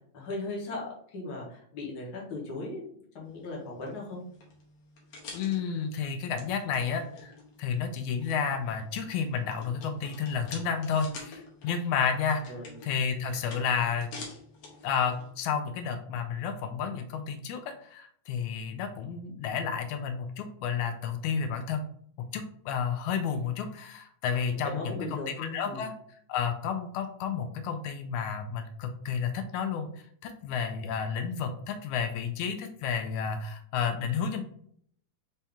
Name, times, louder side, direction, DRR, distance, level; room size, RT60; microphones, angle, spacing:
voice 1, 0.1-2.8 3.1-4.2 12.5-12.8 24.4-25.9, left 2 dB, 45° left, -3 dB, 1.3 m, -37 dB
sound 1, 3.2-15.3, left 4 dB, 65° left, 2.0 m, -49 dB
voice 2, 5.3-7.3 7.6-12.5 12.8-14.1 14.8-21.8 22.3-25.9 26.3-29.9 30.2-34.4, left 6 dB, 85° left, 7 dB, 1.9 m, -31 dB
5.3 x 2.8 x 3.5 m, 0.63 s
omnidirectional pair, 3.4 m